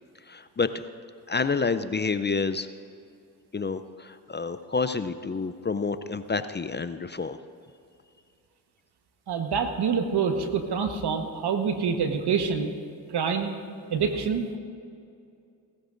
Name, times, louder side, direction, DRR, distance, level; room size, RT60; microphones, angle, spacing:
voice 1, 0.3-0.8 1.3-2.7 3.5-7.4, left 4 dB, 25° left, 12 dB, 0.6 m, -29 dB
voice 2, 9.3-12.7 13.1-13.5 13.9-14.6, right 6 dB, 70° right, 6 dB, 1.3 m, -26 dB
18.0 x 14.0 x 2.6 m, 2.5 s
supercardioid pair, 45°, 41 cm